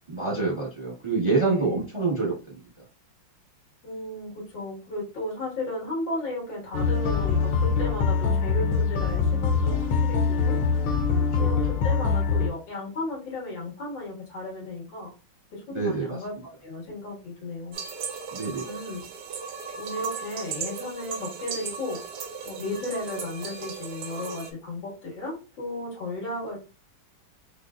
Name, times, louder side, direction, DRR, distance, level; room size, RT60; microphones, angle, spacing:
voice 1, 0.1-2.5 11.3-11.5 15.7-16.2 18.3-18.7, right 4 dB, 40° right, -2 dB, 0.4 m, -27 dB
voice 2, 1.3-1.8 3.8-10.8 11.3-15.1 15.5-16.3 16.6-17.8 18.6-19.0 19.7-26.6, left 2 dB, 65° left, -3 dB, 2.3 m, -35 dB
sound 1, 6.7-12.5, left 5 dB, 80° left, 1.5 m, -23 dB
sound 2, 17.7-24.5, right 5 dB, 70° right, 1.1 m, -36 dB
5.4 x 2.0 x 2.3 m, 0.31 s
omnidirectional pair, 2.2 m